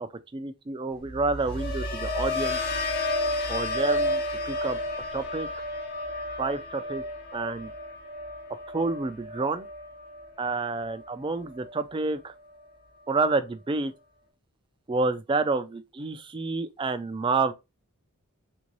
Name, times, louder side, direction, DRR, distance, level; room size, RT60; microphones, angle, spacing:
voice 1, 0.0-2.6 3.5-4.8 5.1-5.5 6.4-7.0 7.3-7.7 8.7-9.7 10.4-12.3 13.1-13.9 14.9-17.5, right 3 dB, 20° right, 0.3 m, -29 dB
sound 1, 1.1-11.1 11.5-11.9, left 1 dB, 45° left, 1.1 m, -32 dB
3.7 x 2.6 x 3.0 m
head